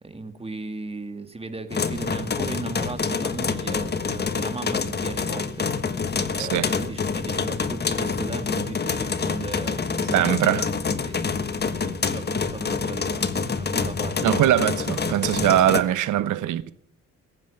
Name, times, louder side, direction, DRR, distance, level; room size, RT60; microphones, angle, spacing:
voice 1, 0.0-10.6 11.0-11.3 12.0-14.2, right 3 dB, 20° right, 2.2 m, -36 dB
sound 1, 1.7-15.8, left 5 dB, 35° left, 1.4 m, -27 dB
voice 2, 6.4-6.7 10.1-10.7 14.2-16.7, right 12 dB, 80° right, 1.1 m, -21 dB
21.0 x 9.3 x 6.7 m
cardioid pair, 90°, 30 cm